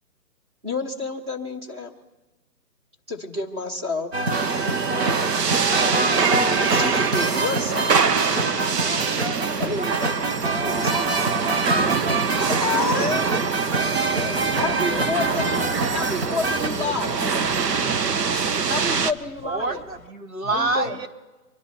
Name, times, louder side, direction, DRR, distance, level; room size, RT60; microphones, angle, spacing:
voice 1, 0.6-1.9 3.1-4.3 6.8-8.0 9.6-10.2 10.6-11.5 12.4-13.3 14.6-15.4 15.9-17.2 18.7-19.8 20.5-21.0, left 3 dB, 15° right, 3 dB, 1.3 m, -29 dB
sound 1, 4.1-16.7, right 3 dB, 40° right, 0.7 m, -26 dB
sound 2, 4.3-19.1, right 5 dB, 85° right, 1.1 m, -24 dB
sound 3, 6.9-20.1, left 6 dB, ahead, 1.3 m, -45 dB
voice 2, 14.2-15.0 15.3-16.1 16.6-17.5 17.8-17.9 18.9-19.1 20.4-21.1, left 6 dB, 35° left, 14 dB, 0.8 m, -39 dB
voice 3, 19.4-21.1, right 3 dB, 55° right, 4 dB, 2.7 m, -26 dB
25.0 x 10.5 x 4.2 m, 1.1 s
hypercardioid pair, 170°, 47 cm